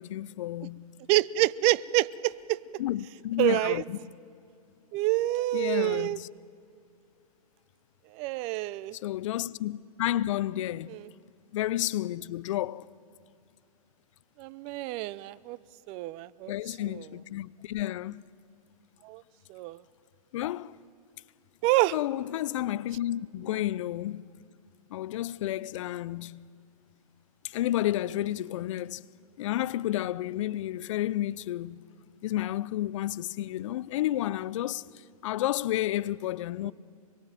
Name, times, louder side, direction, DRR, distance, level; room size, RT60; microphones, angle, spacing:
voice 1, 0.0-0.9 2.8-4.0 5.5-6.3 8.9-11.0 11.5-12.9 16.5-18.2 20.3-20.8 21.9-24.2 24.9-26.4 27.4-29.0 29.4-31.8 32.2-34.9 35.2-36.7, left 14 dB, 50° left, 0.6 m, -31 dB
voice 2, 1.1-2.6 3.4-3.8 4.9-6.2 8.1-9.0 10.9-11.0 14.4-15.6 15.9-16.5 16.9-17.0 19.0-19.2 19.5-19.8 21.6-21.9 36.6-36.7, right 17 dB, 35° right, 0.6 m, -27 dB
25.0 x 22.0 x 9.1 m
hypercardioid pair, 120°, 20 cm